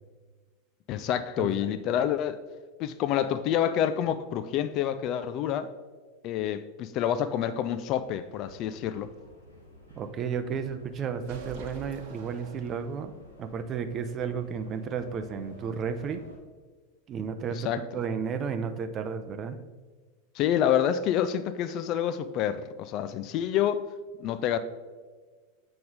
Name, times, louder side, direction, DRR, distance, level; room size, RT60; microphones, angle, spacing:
voice 1, 0.9-2.4 2.8-5.7 6.2-9.1 17.6-17.8 20.4-23.8 24.2-24.6, left 10 dB, 40° left, 0.4 m, -28 dB
sound 1, 7.6-16.4, equal, 85° left, 1.4 m, -52 dB
voice 2, 9.9-16.2 17.1-19.6, right 6 dB, 30° right, 0.6 m, -33 dB
sound 2, 11.2-13.3, right 4 dB, 50° right, 0.9 m, -46 dB
7.7 x 5.2 x 3.6 m
figure-of-eight pair, 85°, 0 cm